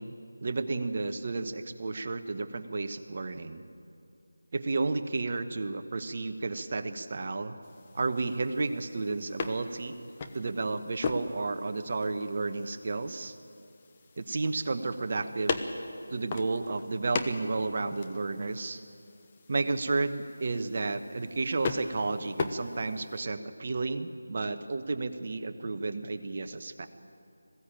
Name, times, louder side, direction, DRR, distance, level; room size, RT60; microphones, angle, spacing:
voice 1, 0.0-3.7 4.5-7.6 7.9-9.9 10.3-13.3 14.2-15.6 16.1-18.8 19.5-26.9, right 3 dB, 40° right, 8 dB, 1.1 m, -32 dB
sound 1, 7.6-23.2, left 4 dB, 25° left, 1.0 m, -39 dB
20.5 x 15.5 x 8.9 m, 2.5 s
figure-of-eight pair, 170°, 0 cm